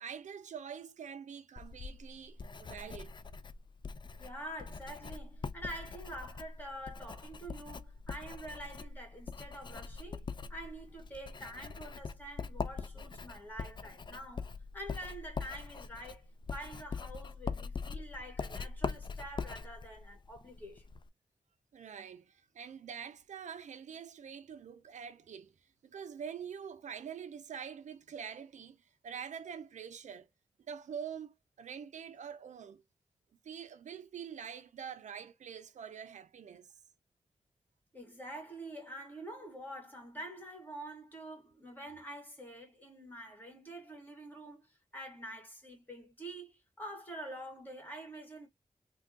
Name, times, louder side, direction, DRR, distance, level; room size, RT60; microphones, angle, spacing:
voice 1, 0.0-3.1 21.7-25.5 25.8-30.3 30.7-32.8 33.4-36.7, right 7 dB, 80° right, 0.4 m, -45 dB
Writing, 1.6-21.1, left 5 dB, 40° left, 0.4 m, -43 dB
voice 2, 4.2-20.9 37.9-48.5, right 1 dB, 15° left, 1.8 m, -47 dB
3.4 x 2.2 x 2.6 m
cardioid pair, 60°, 12 cm